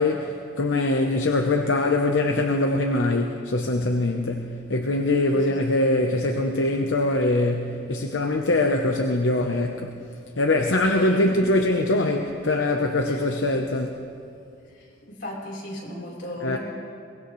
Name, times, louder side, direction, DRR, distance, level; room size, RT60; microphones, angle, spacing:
voice 1, 0.0-10.0 10.4-14.1 16.4-16.6, left 2 dB, 85° left, 3 dB, 0.9 m, -23 dB
voice 2, 11.0-11.4 13.1-13.2 15.1-16.6, left 1 dB, 60° left, -4 dB, 4.2 m, -36 dB
23.0 x 19.5 x 3.2 m, 2.5 s
head